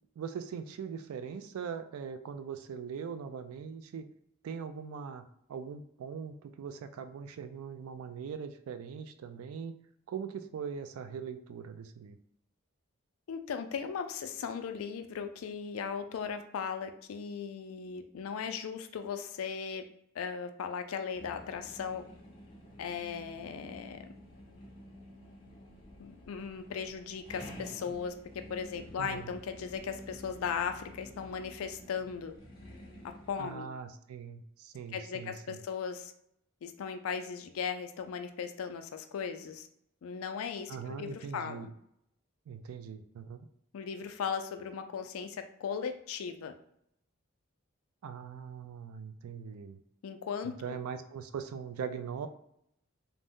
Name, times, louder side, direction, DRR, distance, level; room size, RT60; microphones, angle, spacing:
voice 1, 0.2-4.1 4.4-9.7 10.1-12.2 29.0-29.3 33.4-35.6 40.7-41.7 42.5-43.5 48.0-49.8 50.4-52.3, right 6 dB, 80° right, 10 dB, 0.3 m, -41 dB
voice 2, 13.3-19.8 20.1-22.0 22.8-24.1 26.0-28.2 28.5-32.3 33.0-33.7 34.9-36.1 36.6-39.7 40.0-41.7 43.7-46.5 50.0-50.8, left 6 dB, 75° left, 8 dB, 0.3 m, -37 dB
sound 1, 21.1-33.5, equal, 20° left, 0.6 m, -51 dB
2.6 x 2.0 x 3.5 m, 0.73 s
head